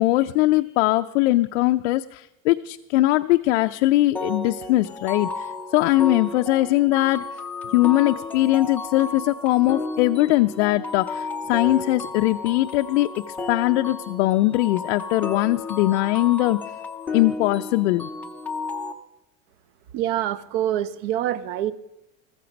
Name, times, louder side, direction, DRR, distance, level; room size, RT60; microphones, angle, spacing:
voice 1, 0.0-7.2 7.7-16.6 17.1-18.1, left 17 dB, 80° left, 7 dB, 0.5 m, -21 dB
sound 1, 4.2-18.9, left 3 dB, 5° left, 0.4 m, -33 dB
voice 2, 19.9-21.7, right 12 dB, 50° right, 18 dB, 0.7 m, -25 dB
14.5 x 14.5 x 5.2 m, 0.88 s
supercardioid pair, 165°, 35 cm